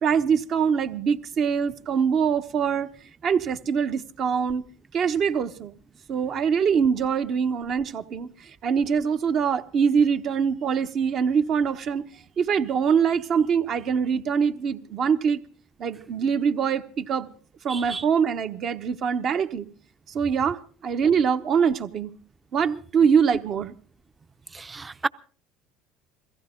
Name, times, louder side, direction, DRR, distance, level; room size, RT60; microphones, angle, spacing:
voice 1, 0.0-2.9 3.2-4.6 4.9-5.7 6.1-12.0 12.4-15.4 15.8-17.3 17.6-19.7 20.1-22.1 22.5-23.7, right 6 dB, 50° right, 1.2 m, -23 dB
voice 2, 17.7-18.0 24.5-25.1, right 4 dB, 20° right, 0.7 m, -31 dB
22.0 x 15.5 x 3.8 m
supercardioid pair, 85°, 0 cm